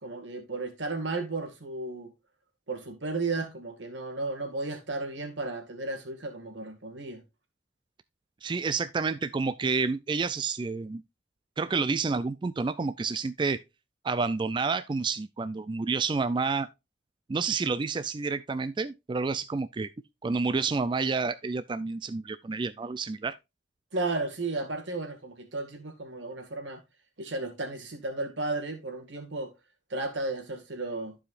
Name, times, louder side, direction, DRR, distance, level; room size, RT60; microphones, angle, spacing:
voice 1, 0.0-2.1 2.7-7.2 23.9-26.8 27.2-29.5 29.9-31.2, right 3 dB, 85° right, 2.0 m, -34 dB
voice 2, 8.4-11.0 11.6-13.6 14.0-16.7 17.3-19.9 20.2-23.4, right 4 dB, 25° right, 0.3 m, -29 dB
14.0 x 4.9 x 2.4 m
head